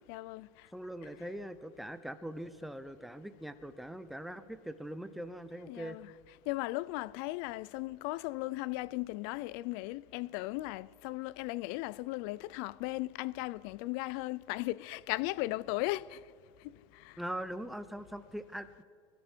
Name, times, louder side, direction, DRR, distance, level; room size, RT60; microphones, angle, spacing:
voice 1, 0.1-0.7 5.7-6.1 6.5-16.2 16.6-17.2, left 19 dB, 55° left, 0.4 m, -37 dB
voice 2, 0.7-6.0 17.2-18.8, right 1 dB, ahead, 0.6 m, -42 dB
22.5 x 13.5 x 4.5 m
supercardioid pair, 140°, 14 cm